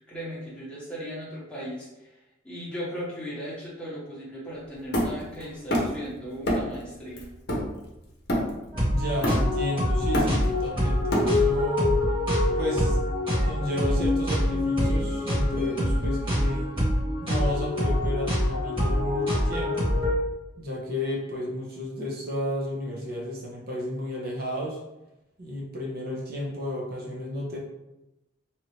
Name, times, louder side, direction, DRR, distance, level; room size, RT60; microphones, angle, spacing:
voice 1, 0.1-2.2 2.4-7.3, equal, 5° left, -8 dB, 1.0 m, -37 dB
Hammer, 4.9-6.1 6.4-6.8 7.2-8.7 9.2-9.7 10.0-11.6, equal, 55° left, 0.7 m, -27 dB
sound 1, 8.7-20.1, left 1 dB, 25° right, 1.5 m, -25 dB
voice 2, 8.7-11.9 12.6-13.0 13.4-16.7 17.2-19.9 20.6-24.8 25.4-27.6, left 1 dB, 50° right, -3 dB, 0.8 m, -32 dB
2.8 x 2.6 x 3.1 m, 0.95 s
head